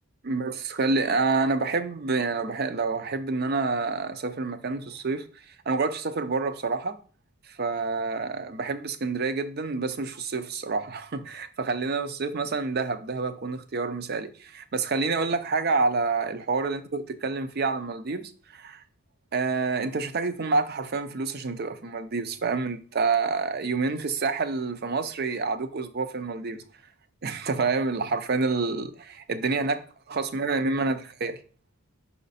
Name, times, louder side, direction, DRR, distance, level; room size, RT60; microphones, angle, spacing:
voice 1, 0.2-7.0 7.6-18.8 19.3-26.6 27.2-31.4, right 4 dB, 45° right, 0.5 m, -28 dB
5.7 x 4.3 x 4.1 m
head